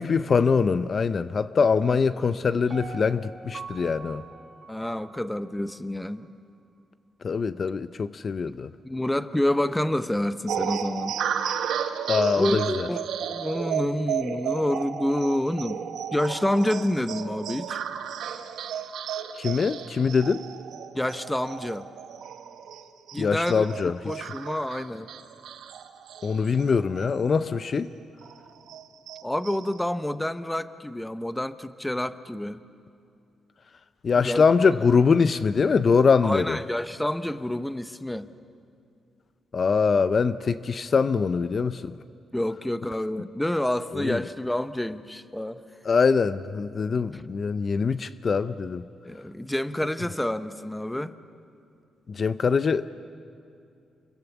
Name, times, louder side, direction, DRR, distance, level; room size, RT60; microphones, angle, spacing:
voice 1, 0.0-4.2 7.2-8.7 12.1-12.9 19.3-20.4 23.2-24.3 26.2-27.9 34.0-36.6 39.5-42.0 43.9-44.2 45.9-48.8 52.1-52.9, left 5 dB, 40° left, 13 dB, 0.5 m, -23 dB
voice 2, 1.9-2.6 4.7-6.3 8.5-8.6 8.8-11.2 12.4-15.8 16.1-17.8 20.9-21.9 23.1-25.1 29.2-32.6 34.2-34.4 36.2-38.3 42.3-45.6 47.1-47.2 47.8-47.9 49.0-51.2, left 1 dB, 5° left, 13 dB, 0.7 m, -28 dB
Piano, 2.7-5.8 6.2-6.3, right 5 dB, 50° right, 1.7 m, -43 dB
sound 1, 10.5-27.4 27.7-27.8 28.2-29.8, right 8 dB, 85° right, 1.2 m, -33 dB
28.5 x 23.0 x 7.2 m, 2.5 s
cardioid pair, 130°, 0 cm